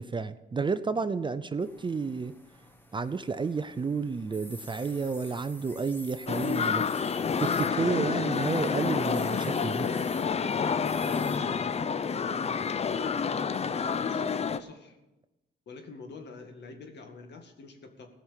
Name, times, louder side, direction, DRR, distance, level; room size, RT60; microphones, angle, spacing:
voice 1, 0.0-2.3 2.9-6.8 7.4-9.9, right 4 dB, 25° right, 12 dB, 0.5 m, -31 dB
sound 1, 1.6-11.4, left 1 dB, 10° left, 1.4 m, -50 dB
sound 2, 6.3-14.6, left 6 dB, 30° left, 0.6 m, -29 dB
voice 2, 14.0-15.0 15.7-18.1, left 4 dB, 60° left, 5 dB, 2.1 m, -46 dB
16.5 x 6.3 x 7.5 m, 1.0 s
cardioid pair, 90°, 20 cm